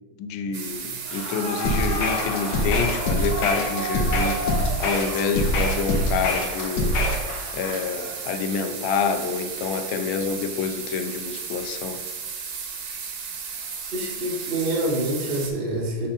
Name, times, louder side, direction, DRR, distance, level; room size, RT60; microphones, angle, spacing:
voice 1, 0.2-7.0 7.5-12.0, left 5 dB, 80° left, 8 dB, 1.3 m, -27 dB
sound 1, 0.5-15.5, right 6 dB, 75° right, 1.8 m, -35 dB
Clapping / Cheering / Applause, 1.0-8.4, left 1 dB, 35° left, 2.1 m, -34 dB
sound 2, 1.6-7.3, left 1 dB, 60° left, 1.2 m, -24 dB
voice 2, 13.9-16.1, right 1 dB, 40° right, -2 dB, 0.8 m, -26 dB
5.5 x 4.2 x 5.1 m, 1.3 s
omnidirectional pair, 2.3 m